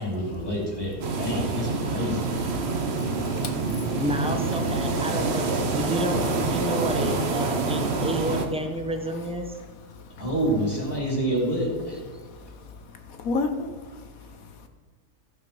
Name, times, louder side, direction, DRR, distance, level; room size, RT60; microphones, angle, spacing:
voice 1, 0.0-2.3 10.2-12.0, right 1 dB, 15° left, -4 dB, 3.3 m, -27 dB
sound 1, 1.0-8.5, right 3 dB, 45° right, 1.0 m, -26 dB
voice 2, 2.6-4.0 9.9-10.3 12.2-14.7, left 3 dB, 60° left, 6 dB, 1.2 m, -34 dB
voice 3, 4.0-9.6, right 1 dB, 5° right, 4 dB, 0.4 m, -30 dB
14.5 x 5.8 x 5.4 m, 1.5 s
omnidirectional pair, 1.8 m